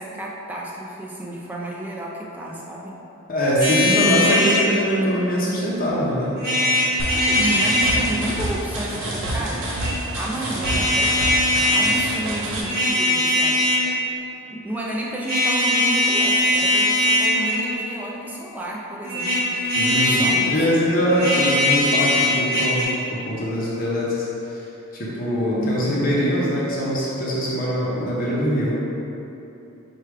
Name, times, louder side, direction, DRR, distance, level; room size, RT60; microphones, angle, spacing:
voice 1, 0.0-2.9 7.1-9.7 10.1-11.2 11.7-13.7 14.5-19.5 20.0-20.9 25.5-26.3, right 1 dB, 10° right, -4 dB, 0.4 m, -31 dB
voice 2, 3.3-6.3 6.7-6.8 19.7-24.7 24.9-28.8, equal, 40° left, -6 dB, 0.7 m, -22 dB
sound 1, 3.6-4.7 6.4-8.0 9.5-9.9 10.6-11.9 12.5-13.9 15.2-17.7 19.0-20.4 21.1-22.8, left 1 dB, 45° right, 1.1 m, -20 dB
sound 2, 7.0-12.6, right 1 dB, 60° right, 0.7 m, -28 dB
4.8 x 2.3 x 4.6 m, 2.9 s
head